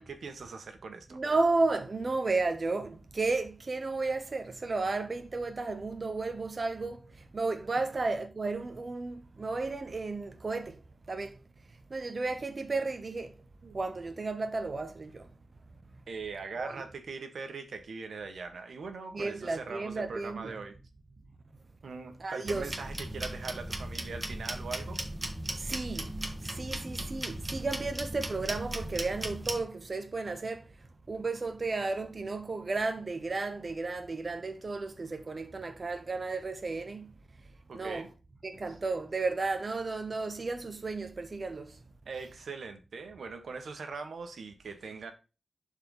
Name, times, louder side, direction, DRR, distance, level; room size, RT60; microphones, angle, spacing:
voice 1, 0.0-1.2 13.6-13.8 16.1-20.8 21.8-25.0 37.7-38.1 42.0-45.1, right 4 dB, 80° right, 1.5 m, -41 dB
voice 2, 1.1-10.8 11.1-11.4 11.7-13.4 13.7-15.3 16.6-16.7 19.1-20.5 22.2-22.7 25.5-38.1 38.4-41.8, right 3 dB, 40° right, 1.0 m, -33 dB
sound 1, 22.4-29.6, right 1 dB, 20° right, 1.7 m, -37 dB
11.0 x 4.5 x 4.0 m
wide cardioid pair, 100°, 0 cm